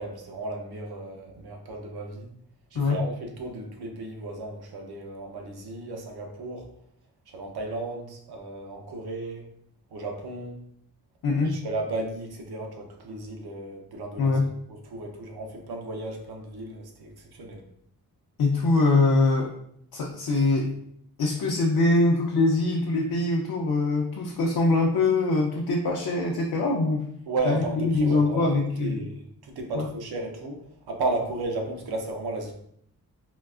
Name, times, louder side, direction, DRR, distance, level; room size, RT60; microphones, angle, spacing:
voice 1, 0.0-2.3 2.7-6.7 7.3-9.4 9.9-10.6 11.4-14.4 14.7-17.6 27.3-30.6 30.9-32.5, right 2 dB, 90° right, 2 dB, 0.7 m, -34 dB
voice 2, 2.7-3.1 11.2-11.6 14.2-14.5 18.4-19.5 19.9-20.7 21.2-27.1 27.4-29.0 29.7-29.9, left 3 dB, 65° left, 0 dB, 0.5 m, -23 dB
3.8 x 2.3 x 2.3 m, 0.70 s
wide cardioid pair, 120°, 37 cm